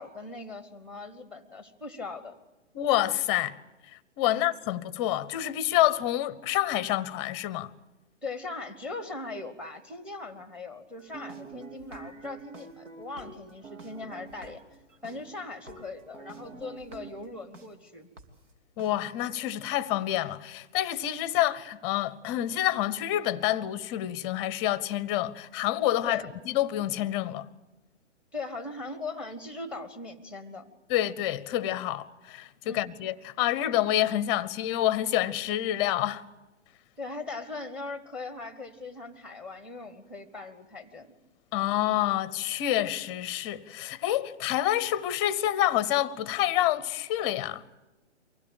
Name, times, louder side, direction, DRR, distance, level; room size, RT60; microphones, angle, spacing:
voice 1, 0.0-2.4 4.3-4.5 8.2-14.6 15.0-18.1 26.0-26.3 28.3-30.7 32.6-32.9 37.0-41.1, left 3 dB, 5° right, 1.1 m, -40 dB
voice 2, 2.7-3.6 4.2-7.7 18.8-27.5 30.9-36.2 41.5-47.8, left 13 dB, 25° left, 0.7 m, -28 dB
sound 1, 11.0-17.7 18.2-18.3 18.8-18.9, right 4 dB, 75° right, 3.1 m, -47 dB
24.0 x 16.5 x 8.9 m
figure-of-eight pair, 130°, 37 cm